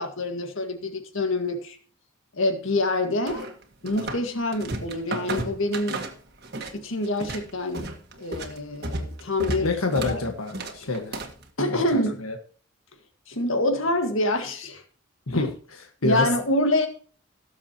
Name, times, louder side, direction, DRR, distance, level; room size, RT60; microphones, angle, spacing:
voice 1, 0.0-1.8 2.3-3.5 3.8-6.0 6.7-7.9 8.2-9.8 10.1-10.2 10.8-10.9 11.6-12.2 13.3-14.8 15.3-15.4 16.0-16.9, left 1 dB, 65° left, 6 dB, 1.9 m, -26 dB
sound 1, 3.3-4.3 4.5-6.8 7.0-11.4, right 2 dB, 50° right, 1.7 m, -33 dB
voice 2, 9.6-11.2 11.7-12.4 15.3-16.3, left 3 dB, 85° left, 4 dB, 1.6 m, -28 dB
18.0 x 7.5 x 3.0 m, 0.42 s
head